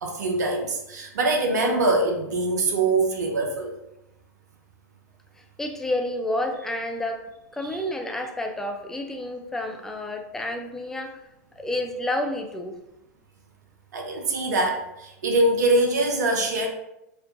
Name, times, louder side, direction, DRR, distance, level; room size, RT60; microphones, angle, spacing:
voice 1, 0.0-3.7 13.9-16.7, right 2 dB, 70° right, 2 dB, 0.6 m, -23 dB
voice 2, 5.6-7.2 7.5-11.2 11.6-12.8, left 1 dB, 5° left, 3 dB, 0.4 m, -29 dB
4.3 x 2.5 x 2.6 m, 0.89 s
figure-of-eight pair, 95°, 10 cm